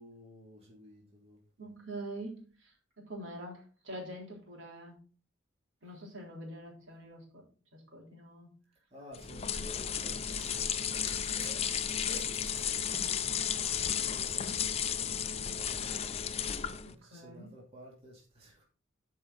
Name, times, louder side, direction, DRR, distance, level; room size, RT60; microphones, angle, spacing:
voice 1, 0.0-1.4 8.9-12.4 13.5-16.4 16.9-18.6, equal, 30° right, 2.7 m, -54 dB
voice 2, 1.6-5.0 5.8-7.4 7.7-8.5 9.5-9.7 11.9-12.3 16.8-17.5, right 1 dB, 70° right, 3.7 m, -45 dB
sound 1, 9.1-16.9, left 8 dB, 30° left, 0.6 m, -33 dB
Crumpling crinkling, 10.1-15.3, right 1 dB, 15° right, 2.5 m, -54 dB
12.0 x 5.5 x 4.1 m
head